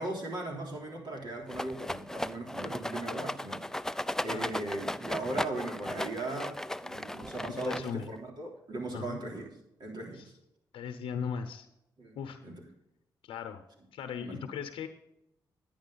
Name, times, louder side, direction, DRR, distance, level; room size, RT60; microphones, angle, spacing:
voice 1, 0.0-3.7 4.2-9.5 9.8-10.3 12.0-12.2 12.4-12.6 14.2-14.5, right 2 dB, 55° right, 0 dB, 3.5 m, -38 dB
Rattle, 1.5-8.2, left 1 dB, 5° left, 0.4 m, -36 dB
voice 2, 7.6-8.1 8.9-9.2 10.1-10.3 10.7-11.7 12.2-12.4 13.2-13.6 13.9-14.9, left 7 dB, 85° left, 8 dB, 0.8 m, -38 dB
10.5 x 9.0 x 4.0 m, 0.83 s
supercardioid pair, 60°, 9 cm